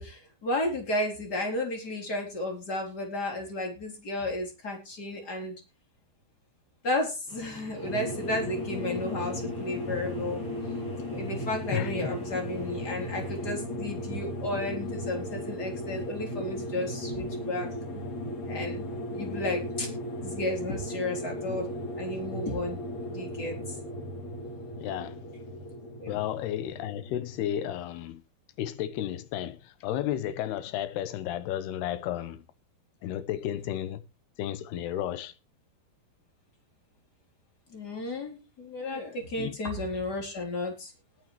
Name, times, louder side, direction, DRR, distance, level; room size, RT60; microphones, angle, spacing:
voice 1, 0.0-5.6 6.8-10.4 11.1-18.1 18.5-18.9 19.1-19.9 20.2-21.7 22.0-22.8 23.1-23.8 26.0-26.2 37.7-40.9, left 1 dB, 25° left, 3.9 m, -33 dB
People Working On A German Construction, 7.3-13.4, left 1 dB, 25° right, 6.3 m, -48 dB
sound 1, 7.8-27.4, left 1 dB, 45° left, 3.5 m, -36 dB
voice 2, 11.7-12.1 24.8-25.2 26.1-28.2 28.6-32.4 33.0-34.0 34.4-35.3 39.4-39.6, left 11 dB, 75° left, 2.9 m, -33 dB
20.0 x 8.8 x 3.3 m
omnidirectional pair, 4.9 m